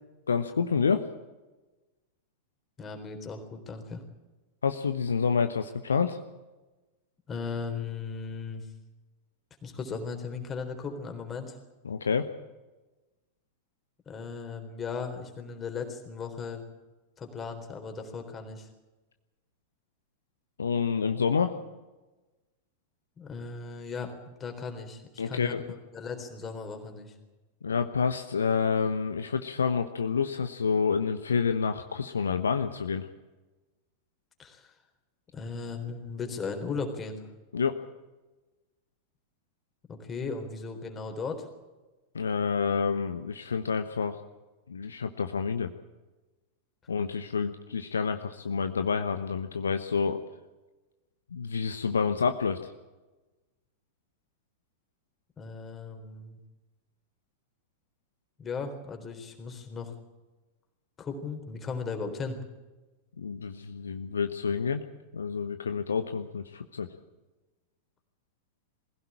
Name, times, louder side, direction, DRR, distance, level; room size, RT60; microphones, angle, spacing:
voice 1, 0.3-1.1 4.6-6.2 11.8-12.3 20.6-21.6 25.2-25.6 27.6-33.1 37.5-37.8 42.1-44.2 44.7-45.7 46.9-50.2 51.3-52.7 63.2-64.8 65.1-66.9, left 5 dB, 70° left, 9 dB, 1.0 m, -28 dB
voice 2, 2.8-4.0 7.3-8.7 9.6-11.6 14.1-16.6 17.2-18.7 23.2-27.1 34.4-34.7 35.3-37.3 39.9-41.5 55.4-56.4 58.4-59.9 61.0-62.4, left 4 dB, 25° left, 5 dB, 3.9 m, -37 dB
21.5 x 16.0 x 8.9 m, 1.1 s
figure-of-eight pair, 90°, 0 cm